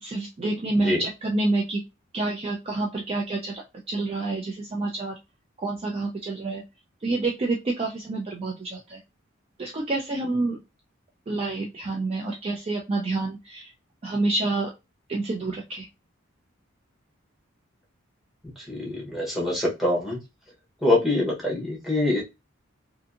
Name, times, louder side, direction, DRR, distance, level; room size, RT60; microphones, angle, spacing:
voice 1, 0.0-1.8 2.1-5.1 5.6-6.6 7.0-9.0 9.6-10.6 11.3-13.7 14.0-14.7 15.1-15.9, right 2 dB, 30° right, 0 dB, 0.3 m, -28 dB
voice 2, 18.7-20.2 20.8-22.2, left 1 dB, ahead, -3 dB, 0.9 m, -24 dB
2.6 x 2.6 x 2.4 m, 0.24 s
head